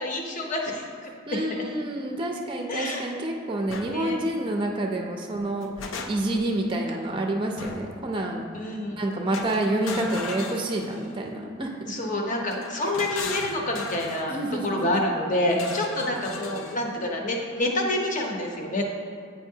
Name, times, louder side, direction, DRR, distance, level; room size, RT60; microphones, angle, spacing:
voice 1, 0.0-1.6 2.7-3.0 3.9-4.2 8.5-9.0 11.9-14.4 14.6-18.9, left 1 dB, 40° left, 1 dB, 0.7 m, -28 dB
voice 2, 1.3-5.7 6.1-8.4 9.0-11.8 14.2-14.9, right 1 dB, 25° right, 2 dB, 0.4 m, -28 dB
sound 1, 3.7-3.9 5.3-6.5 7.6-8.0 9.3-11.2 12.5-14.3 15.5-16.8, left 3 dB, 80° left, 0.5 m, -37 dB
8.6 x 4.5 x 2.7 m, 2.2 s
head